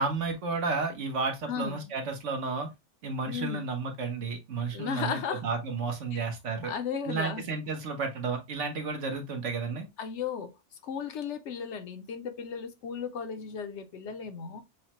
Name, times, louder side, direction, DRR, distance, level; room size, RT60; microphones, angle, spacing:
voice 1, 0.0-2.7 3.0-6.7 7.1-9.9, right 4 dB, 80° right, 1.3 m, -32 dB
voice 2, 1.5-1.8 3.3-3.7 4.7-5.4 6.1-6.2 6.6-7.5 10.0-10.5 10.8-14.6, left 7 dB, 75° left, 1.0 m, -35 dB
6.3 x 2.1 x 2.9 m
omnidirectional pair, 1.2 m